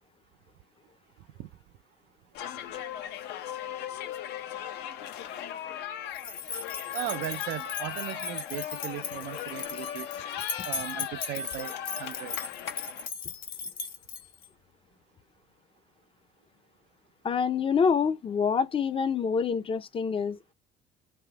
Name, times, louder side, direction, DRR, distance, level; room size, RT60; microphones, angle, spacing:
sound 1, 2.3-13.1, left 10 dB, 80° left, 0.7 m, -38 dB
sound 2, 6.1-14.5, left 5 dB, 60° left, 1.2 m, -38 dB
voice 1, 6.9-10.1 10.6-11.7 12.0-12.4, right 15 dB, 80° right, 0.4 m, -37 dB
voice 2, 17.2-20.5, left 6 dB, 30° left, 0.5 m, -26 dB
3.4 x 2.8 x 4.7 m
cardioid pair, 110°, 17 cm